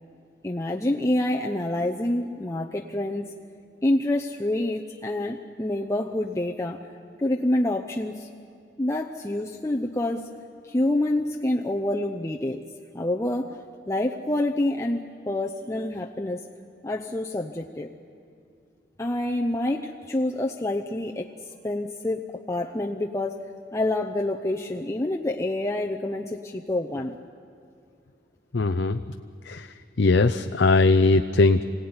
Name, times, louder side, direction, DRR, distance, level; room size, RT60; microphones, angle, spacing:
voice 1, 0.4-3.2 3.8-6.8 7.2-8.3 8.8-10.3 10.6-12.6 12.9-16.4 16.8-17.9 19.0-21.3 21.6-23.4 23.7-27.1, left 1 dB, 15° left, 1 dB, 0.8 m, -27 dB
voice 2, 28.5-29.0 29.5-29.6 30.0-31.6, left 3 dB, 80° left, 8 dB, 0.6 m, -19 dB
27.0 x 17.5 x 9.6 m, 2.4 s
head